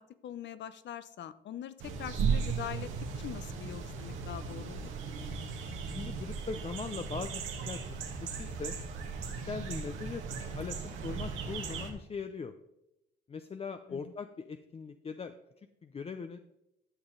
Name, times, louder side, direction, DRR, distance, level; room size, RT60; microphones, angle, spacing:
voice 1, 0.2-2.9 3.2-4.9 13.9-14.1, left 10 dB, 65° left, 14 dB, 0.7 m, -43 dB
sound 1, 1.8-11.9, right 5 dB, 85° right, 1.8 m, -36 dB
voice 2, 5.9-8.8 9.2-10.2 10.6-12.5 13.3-15.3 15.8-16.4, left 5 dB, 30° left, 9 dB, 0.5 m, -40 dB
12.0 x 6.9 x 3.8 m, 0.87 s
cardioid pair, 90°, 20 cm